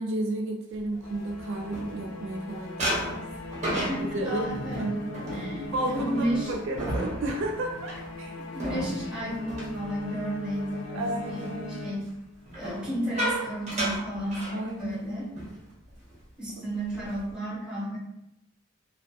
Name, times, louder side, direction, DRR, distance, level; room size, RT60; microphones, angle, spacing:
voice 1, 0.0-3.3 4.1-5.0 5.7-8.4 10.9-11.8 14.5-15.3 16.6-17.1, right 1 dB, 65° right, 2 dB, 0.3 m, -33 dB
sound 1, 0.9-2.3 2.8-10.6 11.0-11.3 12.5-15.1 15.4-15.6 15.9-16.2 16.6-17.3, right 1 dB, 35° right, 0.7 m, -34 dB
sound 2, 1.0-12.5, left 2 dB, 85° left, 0.5 m, -40 dB
sound 3, 2.4-2.9 3.8-4.9 5.2-5.3 7.0-7.1 7.2-7.7, left 1 dB, 40° left, 0.6 m, -43 dB
voice 2, 3.7-5.0 5.3-6.5 8.5-12.0 12.5-15.3 16.4-18.0, equal, 5° right, -7 dB, 0.8 m, -33 dB
2.4 x 2.2 x 2.6 m, 0.82 s
head